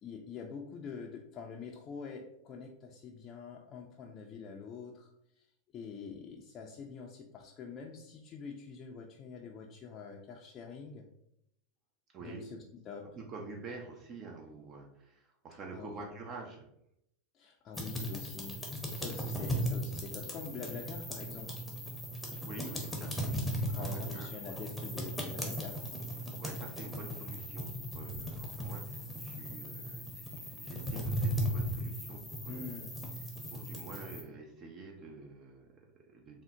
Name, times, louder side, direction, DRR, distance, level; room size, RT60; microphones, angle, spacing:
voice 1, 0.0-5.5 5.7-11.1 12.2-13.1 15.7-16.1 17.3-18.6 18.9-21.6 23.7-25.9 32.5-33.0, left 5 dB, 40° left, 0 dB, 0.4 m, -45 dB
voice 2, 12.1-12.5 13.0-16.7 22.4-23.4 23.7-24.7 26.2-32.8 33.1-36.4, right 3 dB, 40° right, 1 dB, 0.5 m, -48 dB
sound 1, 17.7-34.2, equal, 5° left, 0.7 m, -37 dB
3.5 x 2.1 x 2.6 m, 0.76 s
hypercardioid pair, 105°, 0 cm